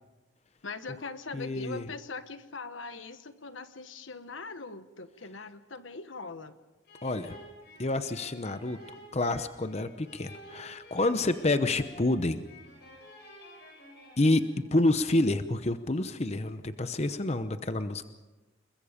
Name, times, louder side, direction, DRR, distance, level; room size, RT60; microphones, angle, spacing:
voice 1, 0.6-6.6 11.0-11.2, left 4 dB, 85° left, 10 dB, 1.3 m, -41 dB
voice 2, 1.3-1.8 7.0-7.4 7.8-8.8 9.1-12.4 14.2-18.1, left 2 dB, 35° left, 10 dB, 0.8 m, -28 dB
sound 1, 6.8-14.9, equal, 55° left, 7.8 m, -51 dB
28.5 x 21.5 x 5.1 m, 1.1 s
head